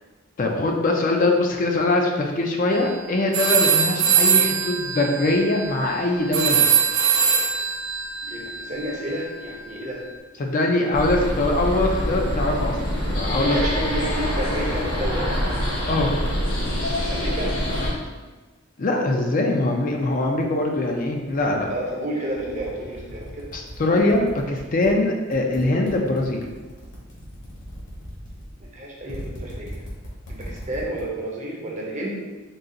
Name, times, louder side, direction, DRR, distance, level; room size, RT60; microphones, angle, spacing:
voice 1, 0.4-6.8 10.4-12.8 13.2-13.6 15.9-16.1 18.8-21.7 23.5-26.4, left 2 dB, 40° left, 1 dB, 0.4 m, -22 dB
sound 1, 2.7-3.0 3.3-10.0, right 7 dB, 75° right, 0.7 m, -22 dB
voice 2, 8.3-10.0 13.3-15.5 17.1-17.6 21.7-23.5 28.6-29.8 30.3-32.3, right 1 dB, 35° right, -2 dB, 0.7 m, -31 dB
sound 2, 10.9-17.9, equal, 85° left, 1.2 m, -25 dB
sound 3, 19.6-21.9 22.2-24.9 25.2-31.0, equal, 60° left, 1.2 m, -40 dB
3.9 x 2.4 x 3.8 m, 1.2 s
head